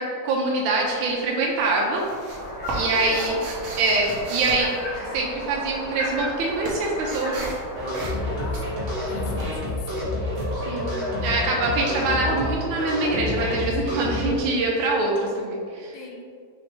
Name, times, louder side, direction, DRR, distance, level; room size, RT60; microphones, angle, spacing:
voice 1, 0.0-2.0 2.7-3.4 3.8-7.5 10.5-16.0, right 2 dB, 85° right, -2 dB, 1.4 m, -24 dB
sound 1, 0.7-1.2 1.5-5.6 5.9-11.4, right 2 dB, 70° right, 0.7 m, -37 dB
sound 2, 2.3-9.4, equal, 50° left, 1.1 m, -35 dB
voice 2, 2.7-3.4 7.1-7.4 8.4-8.6 9.0-9.9 11.2-11.4 15.9-16.4, left 4 dB, 85° left, 1 dB, 1.5 m, -40 dB
sound 3, 7.7-14.4, left 1 dB, 35° right, 1.1 m, -28 dB
5.1 x 2.9 x 3.0 m, 2.2 s
omnidirectional pair, 2.2 m